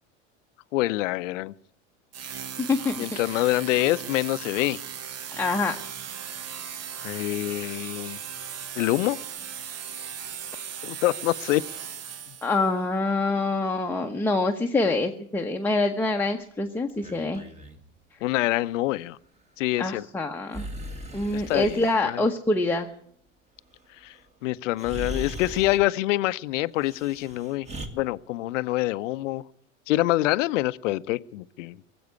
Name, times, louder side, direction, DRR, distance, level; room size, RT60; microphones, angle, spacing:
voice 1, 0.7-1.5 3.0-4.8 7.0-8.2 8.8-9.2 10.8-11.6 18.2-19.2 19.6-20.1 21.3-22.2 24.0-24.1 24.4-27.7 27.9-29.4 29.9-31.8, left 17 dB, 75° left, 16 dB, 0.7 m, -26 dB
sound 1, 2.1-12.7, right 8 dB, 40° right, 1.2 m, -37 dB
voice 2, 5.4-5.8 12.4-17.4 19.8-20.7 21.1-22.9, left 2 dB, 5° left, 3 dB, 1.0 m, -25 dB
Breathing, 16.9-17.8 20.5-22.0 24.1-24.2 24.8-25.9 26.8-27.9, equal, 15° right, 1.9 m, -38 dB
18.0 x 7.9 x 9.5 m, 0.67 s
hypercardioid pair, 105°, 38 cm